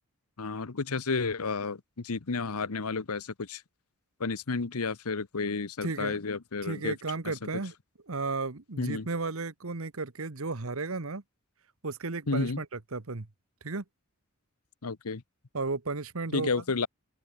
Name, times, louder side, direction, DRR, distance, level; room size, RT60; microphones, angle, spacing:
voice 1, 0.4-3.6 4.2-7.0 8.8-9.1 12.3-12.6 14.8-15.2 16.3-16.9, left 4 dB, 90° left, 1.0 m, -31 dB
voice 2, 5.8-6.2 6.6-7.7 8.1-11.2 11.8-13.3 13.6-13.8 15.5-16.5, right 3 dB, 70° right, 1.3 m, -34 dB
open air
head